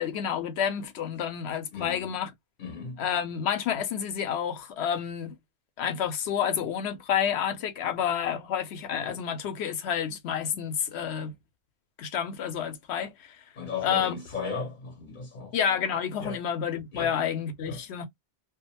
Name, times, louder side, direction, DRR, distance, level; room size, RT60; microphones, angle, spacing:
voice 1, 0.0-2.3 3.0-5.4 5.8-11.4 12.0-13.4 13.8-14.2 15.5-18.1, left 8 dB, 70° left, 0.9 m, -29 dB
voice 2, 1.7-2.1 2.6-3.0 13.6-15.5 16.2-16.4 16.9-17.1 17.6-17.8, left 5 dB, 50° left, 0.8 m, -36 dB
2.4 x 2.2 x 2.8 m
omnidirectional pair, 1.2 m